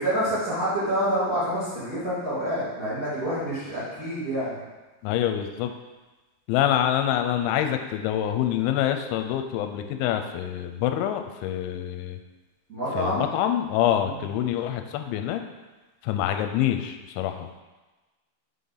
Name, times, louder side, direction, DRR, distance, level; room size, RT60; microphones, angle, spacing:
voice 1, 0.0-4.6 12.7-13.2 14.0-14.2, equal, 85° right, -13 dB, 0.7 m, -27 dB
voice 2, 5.0-5.7 6.5-12.2 12.9-15.4 16.0-17.6, left 11 dB, 85° left, 6 dB, 2.8 m, -26 dB
6.4 x 5.4 x 3.9 m, 1.2 s
omnidirectional pair, 5.5 m